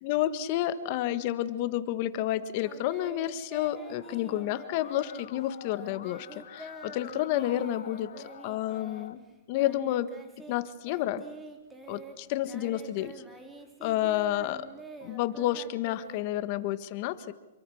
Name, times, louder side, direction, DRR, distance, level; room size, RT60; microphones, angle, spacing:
voice 1, 0.0-8.1 8.4-9.2 9.5-10.1 10.5-11.2 11.9-13.1 13.8-14.7 15.0-17.3, left 13 dB, 40° left, 12 dB, 1.6 m, -30 dB
Singing, 2.6-10.6 10.8-16.7, right 1 dB, 10° right, 3.1 m, -47 dB
Musical instrument, 3.6-9.1, left 9 dB, 75° left, 1.7 m, -47 dB
27.5 x 23.0 x 6.5 m, 1.1 s
hypercardioid pair, 150°, 0 cm